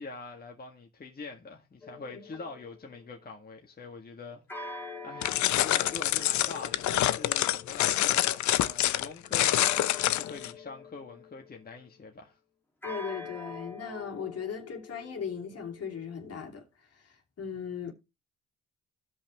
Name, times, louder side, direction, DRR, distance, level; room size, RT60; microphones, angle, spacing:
voice 1, 0.0-12.4, left 3 dB, 30° left, 1.8 m, -44 dB
sound 1, 1.8-3.3 4.5-12.0 12.8-16.4, left 3 dB, 5° left, 2.1 m, -46 dB
sound 2, 5.2-10.5, left 14 dB, 70° left, 0.6 m, -26 dB
voice 2, 12.8-17.9, left 7 dB, 55° left, 2.8 m, -38 dB
16.5 x 5.5 x 3.0 m
cardioid pair, 90°, 30 cm